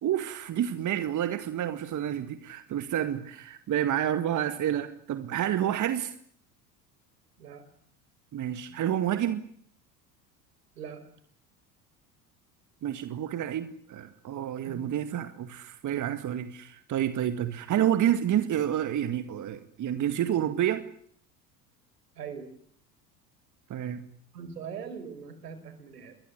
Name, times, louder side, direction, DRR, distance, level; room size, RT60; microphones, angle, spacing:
voice 1, 0.0-6.1 8.3-9.5 12.8-20.8 23.7-24.1, right 11 dB, 35° right, 10 dB, 2.1 m, -29 dB
voice 2, 10.8-11.1 14.7-14.8 22.2-22.5 24.3-26.1, right 6 dB, 75° right, 10 dB, 5.3 m, -41 dB
28.5 x 22.0 x 8.2 m, 0.64 s
figure-of-eight pair, 70°, 49 cm